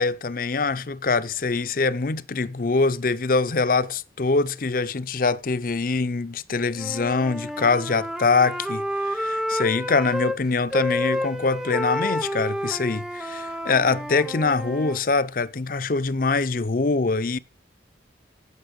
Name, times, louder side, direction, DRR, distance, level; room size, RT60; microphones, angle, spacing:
voice 1, 0.0-17.4, left 4 dB, 50° left, 0.6 m, -24 dB
Wind instrument woodwind instrument, 6.8-10.4 10.7-15.0, equal, 5° right, 0.7 m, -30 dB
16.0 x 6.8 x 5.3 m
head